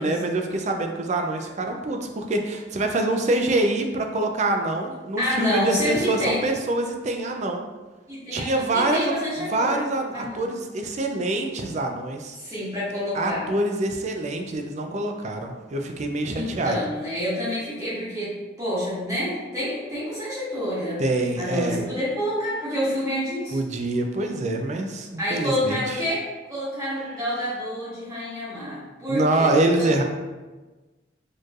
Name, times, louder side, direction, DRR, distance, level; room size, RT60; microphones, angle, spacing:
voice 1, 0.0-7.6 8.3-9.1 9.5-12.4 13.1-16.8 21.0-21.8 23.5-26.0 29.1-30.0, right 2 dB, 40° right, 4 dB, 0.4 m, -25 dB
voice 2, 5.2-6.4 8.1-9.8 10.1-10.5 12.3-13.4 16.3-21.0 21.4-23.7 25.2-26.2 26.5-29.5 29.8-29.9, equal, 20° right, -10 dB, 1.3 m, -28 dB
4.4 x 3.1 x 2.4 m, 1.2 s
head